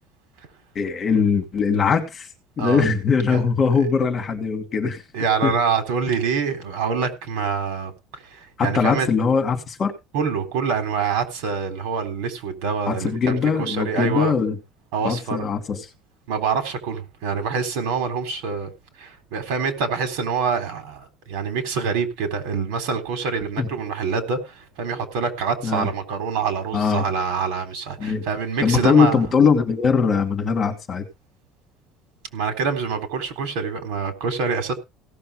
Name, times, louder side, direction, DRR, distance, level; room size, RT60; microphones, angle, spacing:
voice 1, 0.7-2.3 2.6-5.0 5.4-5.5 8.6-9.9 12.9-14.6 15.0-15.8 23.6-23.7 25.6-25.9 26.7-27.0 28.0-28.2 28.6-31.0, left 5 dB, 25° left, 2.6 m, -21 dB
voice 2, 5.1-7.9 8.3-9.1 10.1-14.3 14.9-15.4 16.3-18.7 19.0-29.2 32.3-34.7, right 5 dB, 80° right, 3.6 m, -25 dB
17.0 x 6.8 x 4.9 m
cardioid pair, 165°, 0 cm